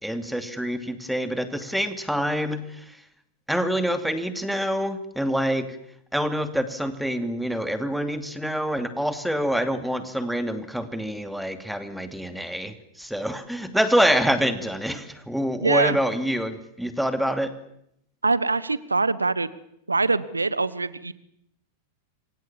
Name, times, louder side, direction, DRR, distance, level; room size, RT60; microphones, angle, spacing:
voice 1, 0.0-3.0 3.5-5.7 6.1-17.5, equal, ahead, 9 dB, 2.6 m, -26 dB
voice 2, 15.6-16.0 18.2-19.5 19.9-21.1, right 3 dB, 85° right, 18 dB, 1.1 m, -23 dB
28.0 x 25.0 x 7.3 m, 0.76 s
figure-of-eight pair, 95°, 0 cm